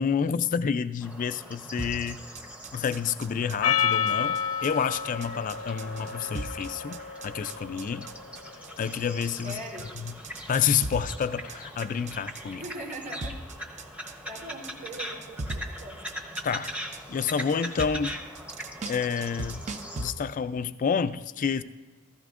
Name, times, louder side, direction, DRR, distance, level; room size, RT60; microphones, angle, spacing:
voice 1, 0.0-2.2 2.7-8.1 8.8-9.6 10.0-10.1 10.5-12.6 16.4-16.7 17.1-18.2 18.9-19.6 20.0-21.6, left 7 dB, 35° left, 13 dB, 0.3 m, -29 dB
sound 1, 1.0-20.1, equal, 5° right, 0.8 m, -42 dB
sound 2, 1.8-20.1, right 2 dB, 30° right, 0.5 m, -39 dB
Percussion, 3.6-8.2, left 8 dB, 85° left, 0.7 m, -30 dB
voice 2, 9.4-9.9 12.4-13.4 14.0-16.2, right 1 dB, 75° right, -2 dB, 2.8 m, -41 dB
15.5 x 14.5 x 2.5 m, 1.3 s
head